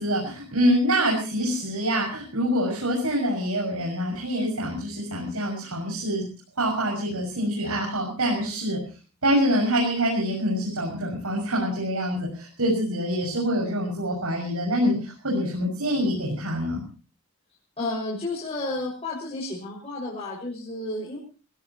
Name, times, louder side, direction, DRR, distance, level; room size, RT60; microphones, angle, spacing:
voice 1, 0.0-6.3 6.6-8.8 9.2-16.8, equal, 90° right, -1 dB, 6.8 m, -25 dB
voice 2, 17.8-21.2, left 2 dB, 25° left, -5 dB, 6.1 m, -31 dB
27.5 x 17.0 x 3.1 m, 0.37 s
head